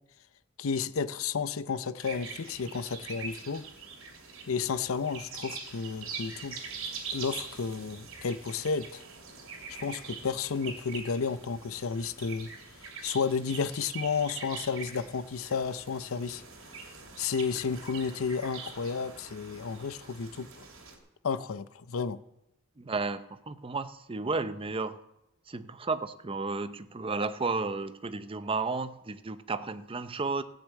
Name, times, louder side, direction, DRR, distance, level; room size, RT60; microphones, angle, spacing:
voice 1, 0.6-3.7 4.5-6.6 7.1-9.0 9.7-12.5 13.0-16.4 17.2-20.7 21.2-22.2, left 5 dB, 85° left, 0.6 m, -32 dB
sound 1, 2.0-21.0, right 5 dB, 70° right, 2.7 m, -44 dB
voice 2, 22.8-25.0 25.5-30.4, right 3 dB, 25° right, 0.6 m, -33 dB
15.5 x 6.6 x 8.3 m
head